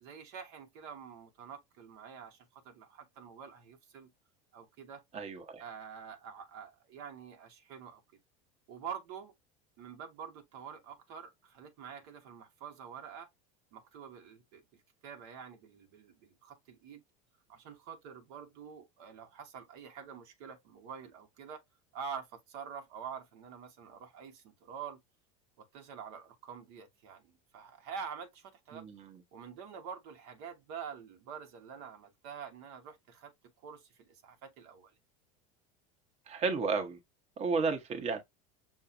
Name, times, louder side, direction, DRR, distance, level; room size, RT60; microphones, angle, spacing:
voice 1, 0.0-4.1 4.5-5.0 5.6-8.0 8.7-9.3 9.8-13.3 13.7-14.6 15.0-17.0 17.5-21.6 21.9-25.0 25.6-28.8 29.3-33.3 33.6-34.9, right 7 dB, 65° right, 1.2 m, -46 dB
voice 2, 5.1-5.6 28.7-29.1 36.3-37.0 37.4-38.2, right 4 dB, 35° right, 1.1 m, -32 dB
5.9 x 2.7 x 2.5 m
supercardioid pair, 120°, 18 cm